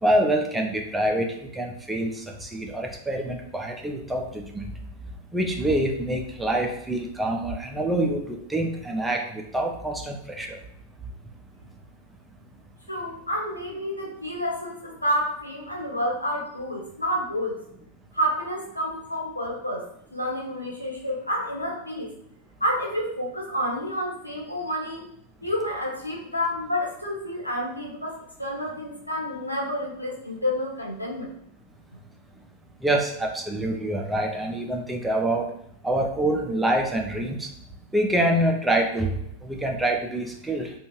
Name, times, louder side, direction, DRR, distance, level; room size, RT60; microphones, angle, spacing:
voice 1, 0.0-4.7 5.3-10.6 32.8-35.5 35.8-37.5 37.9-40.7, right 1 dB, 5° right, 2 dB, 0.4 m, -26 dB
voice 2, 12.9-17.6 18.1-19.8 20.1-22.1 22.6-25.1 25.4-31.3, equal, 85° left, -1 dB, 0.6 m, -29 dB
2.6 x 2.3 x 3.0 m, 0.72 s
figure-of-eight pair, 90°, 0 cm